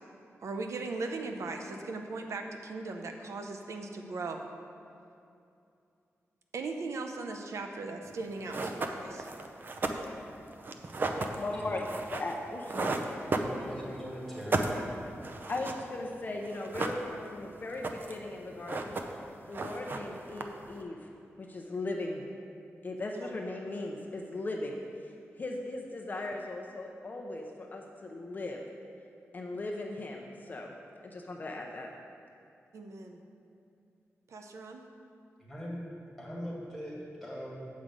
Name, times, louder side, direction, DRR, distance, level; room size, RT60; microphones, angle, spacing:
voice 1, 0.4-4.5 6.5-9.3 23.1-23.3 32.7-33.2 34.3-34.8, right 3 dB, 80° right, 4 dB, 0.7 m, -38 dB
sound 1, 8.1-8.2 8.5-14.0 14.3-16.1 16.4-17.4 17.7-18.3 18.5-19.3 19.5-20.8, right 3 dB, 40° right, 0.6 m, -34 dB
voice 2, 11.4-11.8 12.1-13.0 13.8-14.0 15.5-19.0 19.5-21.1 21.4-22.4 22.8-24.8 25.4-28.6 29.3-30.7 31.0-31.9, left 2 dB, 35° left, 1 dB, 0.6 m, -38 dB
voice 3, 13.3-14.6 35.4-35.8 36.2-37.7, equal, ahead, -6 dB, 2.3 m, -40 dB
8.3 x 5.1 x 7.5 m, 2.6 s
wide cardioid pair, 150°, 5 cm